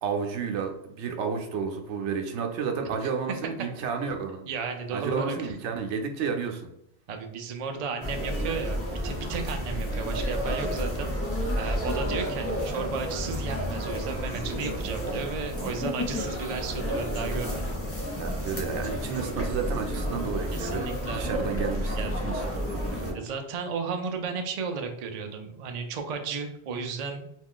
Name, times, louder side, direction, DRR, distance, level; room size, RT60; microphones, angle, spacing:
voice 1, 0.0-4.4 4.9-6.7 18.2-20.9 21.1-22.4 22.7-23.2, right 6 dB, 85° right, 4 dB, 0.9 m, -31 dB
voice 2, 4.5-5.5 7.1-11.2 11.6-17.7 20.5-21.4 22.0-22.1 23.1-27.3, right 5 dB, 55° right, 4 dB, 0.4 m, -34 dB
sound 1, 8.0-23.1, equal, 15° left, 0.5 m, -31 dB
2.9 x 2.3 x 3.6 m, 0.77 s
omnidirectional pair, 1.1 m